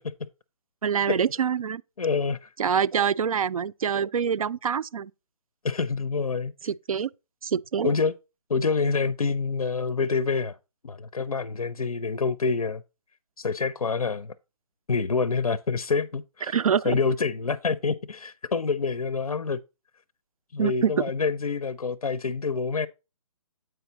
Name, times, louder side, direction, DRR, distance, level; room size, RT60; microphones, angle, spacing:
voice 1, 0.8-1.8 2.6-5.1 6.6-7.1 7.4-7.9 16.5-17.0 20.6-20.9, right 7 dB, 75° right, 0.4 m, -25 dB
voice 2, 2.0-2.5 5.6-6.5 7.8-8.1 8.5-10.6 10.8-12.8 13.4-14.3 14.9-16.6 16.8-19.6 20.5-22.9, left 4 dB, 90° left, 0.5 m, -27 dB
7.9 x 4.6 x 3.9 m
figure-of-eight pair, 140°, 18 cm